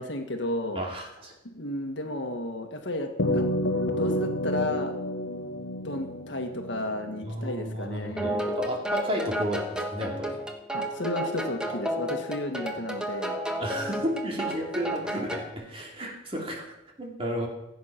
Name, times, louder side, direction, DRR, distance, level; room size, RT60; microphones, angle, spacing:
voice 1, 0.0-0.8 1.4-3.4 3.9-5.0 5.8-8.4 10.7-13.4, left 1 dB, 60° left, 5 dB, 1.7 m, -33 dB
voice 2, 0.7-1.3 7.2-10.4 13.6-17.5, equal, 30° right, 0 dB, 2.8 m, -32 dB
sound 1, 3.2-7.8, left 1 dB, 80° left, 1.3 m, -30 dB
sound 2, 8.2-15.5, right 1 dB, 5° right, 1.4 m, -32 dB
16.0 x 8.6 x 5.9 m, 0.91 s
head